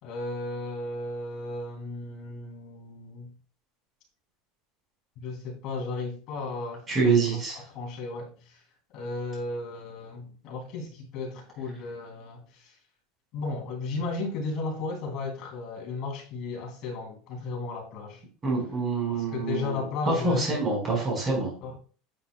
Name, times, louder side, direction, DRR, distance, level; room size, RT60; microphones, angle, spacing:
voice 1, 0.0-3.3 5.2-8.6 8.9-12.8 13.3-18.2 19.1-20.6 21.6-21.8, left 3 dB, 40° left, 2.8 m, -35 dB
voice 2, 6.9-7.6 18.4-19.8 20.1-21.5, right 3 dB, 20° right, 4.4 m, -26 dB
9.6 x 8.3 x 2.2 m
supercardioid pair, 175°, 0 cm